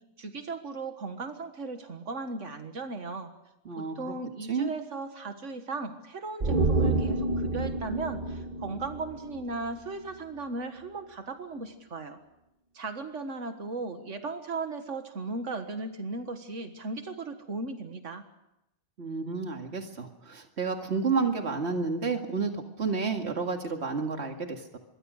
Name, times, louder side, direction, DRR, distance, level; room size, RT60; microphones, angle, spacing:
voice 1, 0.2-3.3 3.8-12.2 12.7-18.3, right 3 dB, 85° right, 7 dB, 1.9 m, -37 dB
sound 1, 6.4-9.8 10.1-10.2, right 2 dB, 45° right, 1.5 m, -29 dB
voice 2, 19.0-24.8, right 4 dB, 60° right, 4 dB, 2.4 m, -30 dB
26.0 x 22.5 x 6.4 m, 0.91 s
omnidirectional pair, 1.2 m